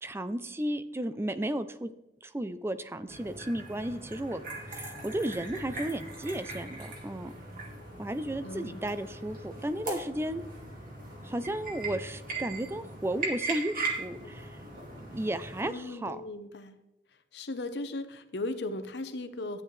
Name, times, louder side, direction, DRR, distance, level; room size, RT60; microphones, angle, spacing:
voice 1, 0.0-1.9 2.2-4.4 4.7-7.3 8.0-10.4 11.2-14.6 15.1-16.2, right 1 dB, 15° right, 12 dB, 0.5 m, -34 dB
sound 1, 3.1-15.6, right 3 dB, 55° right, 2.3 m, -39 dB
voice 2, 8.4-8.8 15.6-16.8 17.3-19.6, left 2 dB, 75° left, 10 dB, 0.9 m, -37 dB
12.5 x 9.5 x 3.2 m, 0.91 s
head